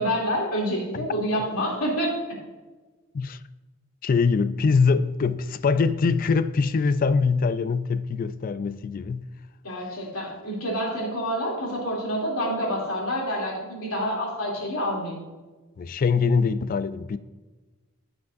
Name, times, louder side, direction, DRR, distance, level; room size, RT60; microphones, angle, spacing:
voice 1, 0.0-2.1 9.6-15.2, equal, 85° left, 2.9 m, -27 dB
voice 2, 4.0-9.3 14.6-14.7 15.8-17.2, left 5 dB, 40° left, 0.3 m, -23 dB
15.5 x 6.0 x 2.6 m
head